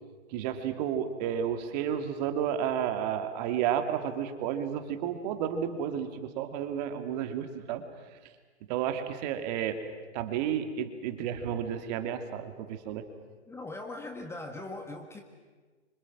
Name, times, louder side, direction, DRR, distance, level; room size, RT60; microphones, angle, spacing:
voice 1, 0.3-7.8 8.7-9.8 10.1-13.0, right 9 dB, 35° right, 7 dB, 2.4 m, -31 dB
voice 2, 13.5-15.2, left 2 dB, 5° left, 4 dB, 1.6 m, -40 dB
29.5 x 25.5 x 6.1 m, 1.4 s
hypercardioid pair, 135°, 35 cm